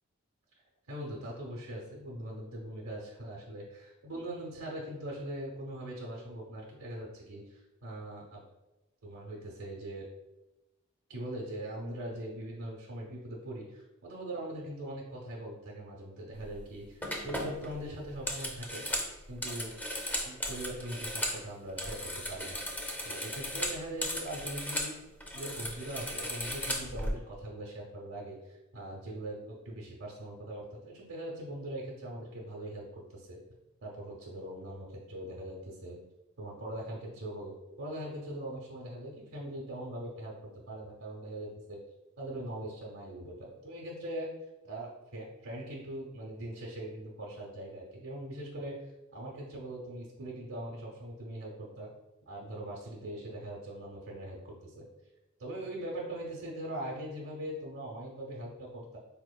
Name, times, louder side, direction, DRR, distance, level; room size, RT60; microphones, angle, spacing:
voice 1, 0.9-8.4 9.0-10.1 11.1-18.9 19.3-19.7 20.2-22.6 23.0-24.9 25.3-33.4 33.8-36.0 36.4-41.8 42.2-44.3 44.6-48.7 49.1-51.9 52.3-54.9 55.4-59.0, right 1 dB, 80° right, -3 dB, 0.7 m, -41 dB
sound 1, 16.4-16.6 17.0-21.4 21.7-24.9 25.2-27.1, equal, 10° left, 0.5 m, -36 dB
4.3 x 2.9 x 2.2 m, 1.0 s
head